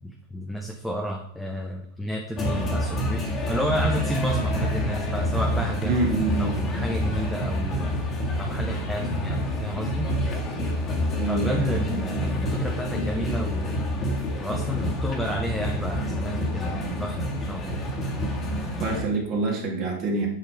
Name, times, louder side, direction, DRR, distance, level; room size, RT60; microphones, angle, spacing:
voice 1, 0.0-6.0 6.4-8.0 8.3-10.1 11.3-13.9 14.4-17.8, equal, ahead, 0 dB, 0.9 m, -31 dB
sound 1, 2.4-19.0, equal, 25° left, 1.8 m, -27 dB
voice 2, 5.8-6.5 11.1-12.1 18.6-20.3, right 3 dB, 35° right, 0 dB, 2.6 m, -27 dB
8.4 x 5.9 x 4.9 m, 0.66 s
figure-of-eight pair, 90°, 0 cm